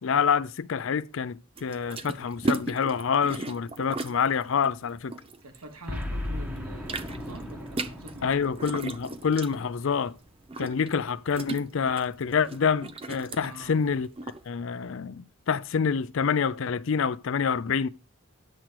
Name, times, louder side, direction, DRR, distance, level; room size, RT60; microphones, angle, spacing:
voice 1, 0.0-5.1 8.2-10.1 10.6-14.1 14.5-17.9, left 6 dB, 60° left, 0.4 m, -27 dB
sound 1, 1.6-6.1 6.4-14.4, right 2 dB, 25° right, 0.4 m, -36 dB
voice 2, 5.4-8.7 13.4-13.8, right 1 dB, 85° right, 1.5 m, -45 dB
Boom, 5.9-10.3, left 1 dB, 5° right, 1.2 m, -37 dB
10.0 x 7.6 x 3.0 m
head